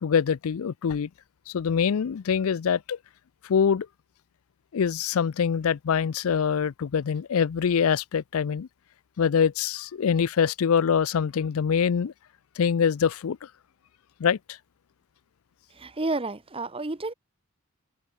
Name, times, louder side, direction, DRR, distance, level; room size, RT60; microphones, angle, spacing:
voice 1, 0.0-1.1 1.5-3.0 3.4-3.9 4.7-8.7 9.2-12.1 12.6-13.4 14.2-14.6, left 7 dB, 85° left, 0.4 m, -24 dB
voice 2, 15.8-17.1, right 2 dB, 25° right, 1.1 m, -30 dB
head